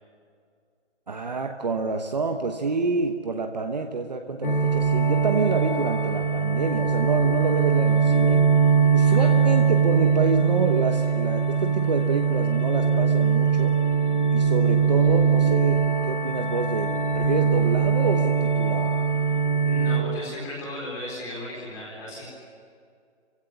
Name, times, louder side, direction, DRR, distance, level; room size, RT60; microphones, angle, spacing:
voice 1, 1.1-8.5 8.9-13.7 14.3-18.9, right 4 dB, 35° right, 4 dB, 1.1 m, -28 dB
sound 1, 4.4-20.0, right 6 dB, 45° left, 2.6 m, -21 dB
voice 2, 19.6-22.3, left 1 dB, 10° left, -4 dB, 4.2 m, -36 dB
29.5 x 16.0 x 9.9 m, 2.2 s
hypercardioid pair, 180°, 35 cm